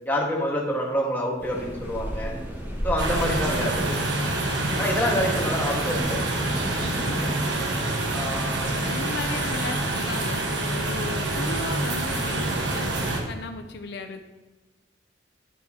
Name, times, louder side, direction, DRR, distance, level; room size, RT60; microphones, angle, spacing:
voice 1, 0.0-2.3 2.8-4.0 4.8-6.2 8.1-8.7, equal, 10° left, -2 dB, 1.5 m, -27 dB
sound 1, 1.4-7.5, equal, 10° right, 1.7 m, -34 dB
sound 2, 3.0-13.2, right 2 dB, 80° right, 1.3 m, -27 dB
voice 2, 4.6-4.9 6.8-7.2 8.1-8.2 8.6-12.9 13.3-14.2, left 3 dB, 65° left, 6 dB, 0.5 m, -36 dB
10.0 x 7.6 x 2.8 m, 1.2 s
head